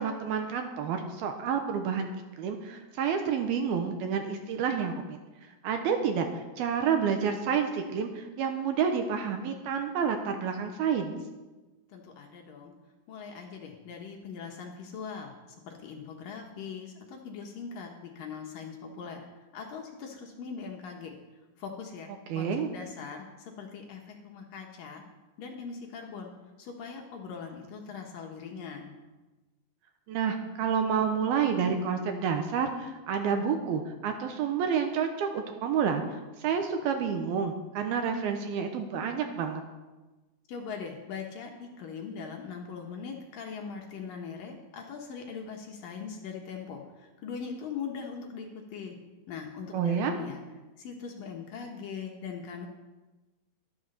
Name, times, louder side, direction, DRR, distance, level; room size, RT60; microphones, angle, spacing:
voice 1, 0.0-2.1 2.4-5.2 5.6-11.1 22.3-22.7 30.1-36.0 36.4-39.6 49.7-50.2, right 7 dB, 75° right, 5 dB, 2.6 m, -29 dB
voice 2, 11.9-12.7 13.1-15.3 15.7-19.2 19.5-21.2 21.6-25.0 25.4-26.3 26.6-29.0 40.5-49.0 49.3-50.4 50.8-52.7, left 6 dB, 65° left, 2 dB, 2.6 m, -41 dB
12.5 x 11.5 x 6.7 m, 1.2 s
omnidirectional pair, 5.0 m